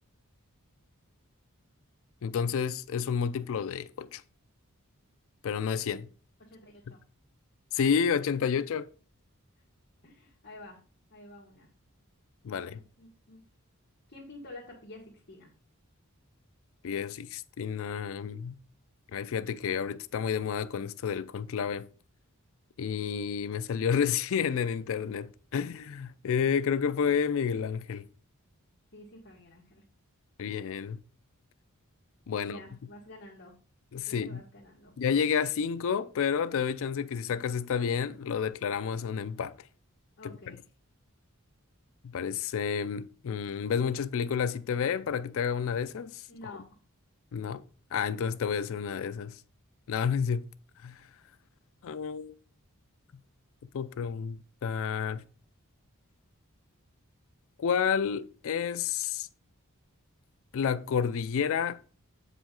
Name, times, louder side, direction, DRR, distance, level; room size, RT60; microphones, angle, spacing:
voice 1, 2.2-4.2 5.4-6.1 7.7-8.9 12.4-12.8 16.8-18.5 19.1-21.9 22.8-28.1 30.4-31.0 32.3-32.6 33.9-34.4 35.0-39.6 40.2-40.3 42.0-46.6 47.3-47.6 47.9-49.4 49.9-50.5 50.8-51.0 51.8-52.3 53.7-55.2 57.6-59.3 60.5-61.8, left 7 dB, 65° left, 0.4 m, -30 dB
voice 2, 6.5-7.0 10.0-10.8 11.1-11.7 12.5-13.4 14.1-15.5 28.9-29.8 32.3-33.5 34.0-34.9 40.2-40.6 46.3-46.6, left 1 dB, 50° left, 1.5 m, -49 dB
8.1 x 5.0 x 3.8 m
head